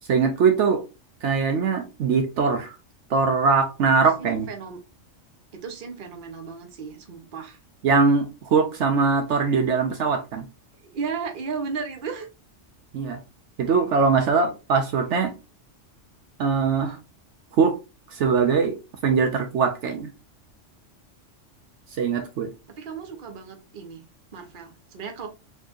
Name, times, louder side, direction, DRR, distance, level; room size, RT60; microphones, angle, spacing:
voice 1, 0.1-0.8 1.2-2.8 3.1-4.5 7.8-10.4 12.9-13.2 13.6-15.3 16.4-17.0 17.6-17.8 18.1-18.8 19.0-20.1 22.0-22.5, right 5 dB, 70° right, 0.9 m, -21 dB
voice 2, 4.2-4.8 5.5-7.6 10.8-12.3 22.7-24.0 24.3-25.3, right 5 dB, 45° right, 0.9 m, -35 dB
4.3 x 3.0 x 2.5 m
omnidirectional pair, 1.3 m